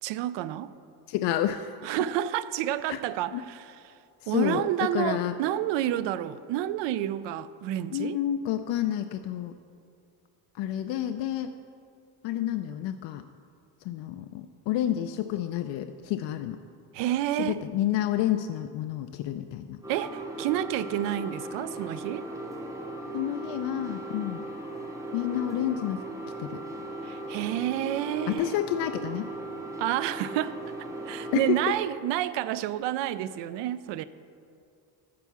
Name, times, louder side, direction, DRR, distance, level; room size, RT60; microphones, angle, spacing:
voice 1, 0.0-0.7 1.8-3.8 4.3-8.2 16.9-17.6 19.9-22.3 27.0-28.5 29.8-30.6 31.1-34.0, right 12 dB, 85° right, 0.5 m, -29 dB
voice 2, 1.1-1.8 2.9-3.0 3.3-3.5 4.2-5.3 7.9-9.6 10.5-11.5 12.2-13.2 13.8-16.6 17.4-19.8 23.1-24.5 25.1-26.0 26.4-26.6 28.3-29.3 31.3-31.6, left 12 dB, 90° left, 0.5 m, -29 dB
sound 1, 19.8-31.7, right 1 dB, 5° right, 0.9 m, -38 dB
13.5 x 4.6 x 7.3 m
cardioid pair, 180°, 43 cm